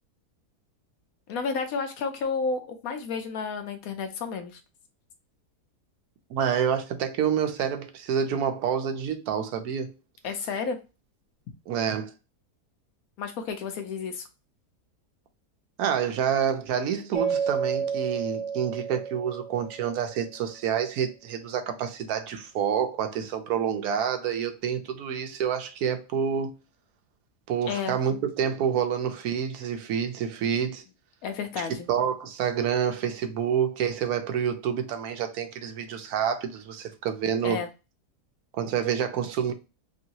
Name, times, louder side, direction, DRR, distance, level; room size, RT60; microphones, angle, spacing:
voice 1, 1.3-4.6 10.2-10.8 13.2-14.2 27.7-28.0 31.2-31.9 37.4-37.7, left 5 dB, 70° left, 1.0 m, -31 dB
voice 2, 6.3-9.9 11.7-12.1 15.8-26.5 27.5-30.8 31.6-37.6 38.5-39.5, right 8 dB, 75° right, 1.0 m, -28 dB
Mallet percussion, 17.1-20.1, right 6 dB, 35° left, 0.6 m, -30 dB
3.1 x 2.6 x 2.7 m
omnidirectional pair, 1.7 m